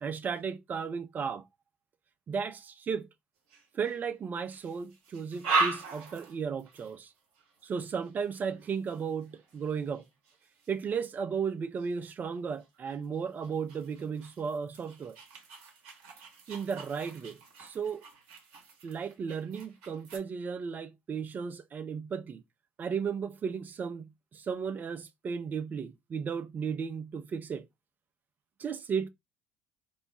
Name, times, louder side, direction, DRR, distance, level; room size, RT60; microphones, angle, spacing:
voice 1, 0.0-1.4 2.3-3.1 3.7-7.1 7.6-10.0 10.7-15.2 16.5-18.0 18.8-22.4 22.8-27.7 28.6-29.1, right 6 dB, 35° right, 0.4 m, -35 dB
sound 1, 3.5-4.0 4.5-11.0 11.8-12.0 12.6-20.2, right 3 dB, 65° right, 0.8 m, -39 dB
2.3 x 2.0 x 3.8 m
hypercardioid pair, 60°, 5 cm